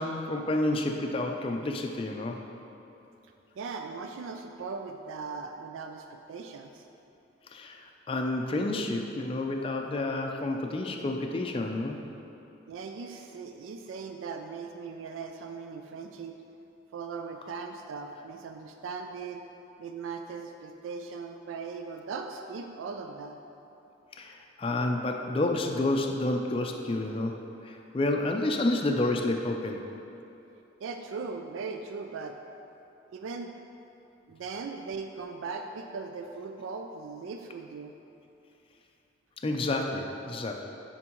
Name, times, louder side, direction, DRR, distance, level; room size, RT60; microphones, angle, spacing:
voice 1, 0.0-2.4 7.5-12.0 24.2-29.8 39.4-40.6, left 2 dB, 30° left, 2 dB, 0.4 m, -30 dB
voice 2, 3.6-6.9 12.7-16.4 16.9-19.4 19.8-23.4 30.8-32.4 33.1-33.5 34.3-37.9, right 4 dB, 90° right, 5 dB, 0.3 m, -39 dB
9.7 x 4.4 x 3.0 m, 2.9 s
head